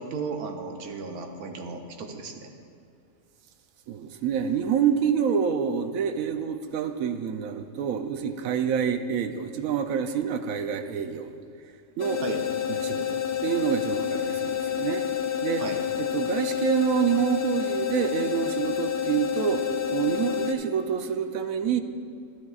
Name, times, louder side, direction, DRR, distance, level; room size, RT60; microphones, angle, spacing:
voice 1, 0.0-2.5 12.2-12.4 15.6-15.8, right 4 dB, 90° right, 3 dB, 1.3 m, -35 dB
voice 2, 3.9-11.3 12.0-12.2 12.7-15.0 15.4-15.6 16.0-19.6 19.9-21.8, right 8 dB, 75° right, 8 dB, 1.0 m, -27 dB
sound 1, 12.0-20.5, left 9 dB, 60° left, 0.7 m, -29 dB
12.0 x 10.5 x 2.4 m, 2.4 s
omnidirectional pair, 1.5 m